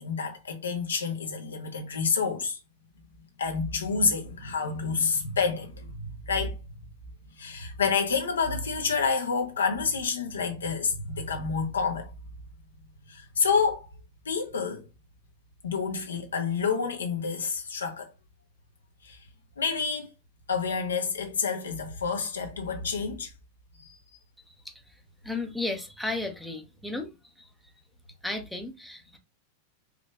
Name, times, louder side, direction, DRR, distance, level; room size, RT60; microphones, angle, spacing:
voice 1, 0.0-2.6 3.4-6.6 7.4-12.1 13.1-13.9 14.2-14.9 15.6-18.1 19.0-19.2 19.6-20.1 20.5-23.3 23.8-24.0, left 5 dB, 70° left, 0.9 m, -28 dB
voice 2, 25.2-27.1 27.4-27.5 28.2-29.2, left 2 dB, ahead, 0.8 m, -33 dB
4.9 x 3.1 x 2.4 m
figure-of-eight pair, 90°, 0 cm